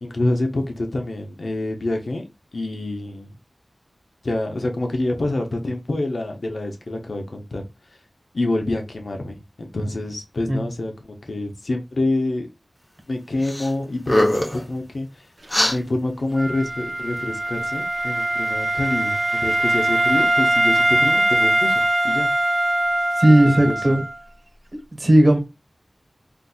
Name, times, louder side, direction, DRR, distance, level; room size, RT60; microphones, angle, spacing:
voice 1, 0.0-2.3 2.5-3.3 4.2-7.6 8.3-12.5 13.1-15.2 15.7-22.3 23.4-24.0, left 2 dB, 75° left, 4 dB, 0.7 m, -27 dB
sound 1, 13.4-13.7 14.0-14.6 15.5-15.8, left 1 dB, 20° left, 0.8 m, -20 dB
Wind instrument woodwind instrument, 16.4-24.1, right 1 dB, 35° right, 0.6 m, -21 dB
voice 2, 23.2-24.0 25.0-25.4, right 1 dB, 60° right, 4 dB, 1.1 m, -15 dB
3.9 x 2.6 x 2.3 m, 0.24 s
wide cardioid pair, 70°, 0 cm